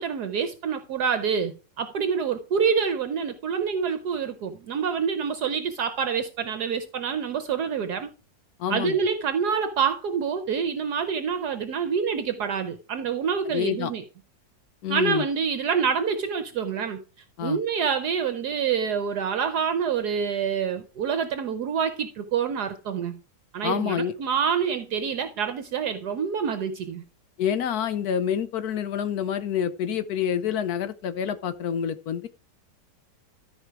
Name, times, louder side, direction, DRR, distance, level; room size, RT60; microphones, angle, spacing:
voice 1, 0.0-8.1 8.7-14.0 14.9-17.0 17.4-23.2 23.5-27.0, right 6 dB, 65° right, 1.2 m, -27 dB
voice 2, 8.6-9.0 13.4-13.9 14.8-15.3 17.4-17.6 23.6-24.1 27.4-32.3, left 8 dB, 65° left, 1.0 m, -27 dB
13.5 x 5.1 x 4.7 m
omnidirectional pair, 2.0 m